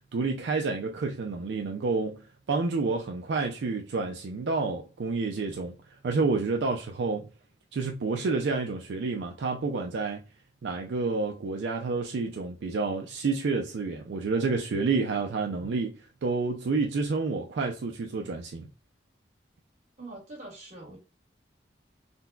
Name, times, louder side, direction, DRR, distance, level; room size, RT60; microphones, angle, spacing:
voice 1, 0.1-5.7 6.0-7.3 7.7-10.2 10.6-18.7, right 4 dB, 70° right, 0.4 m, -29 dB
voice 2, 20.0-21.0, right 2 dB, 40° right, 1.6 m, -43 dB
3.9 x 2.2 x 2.2 m
head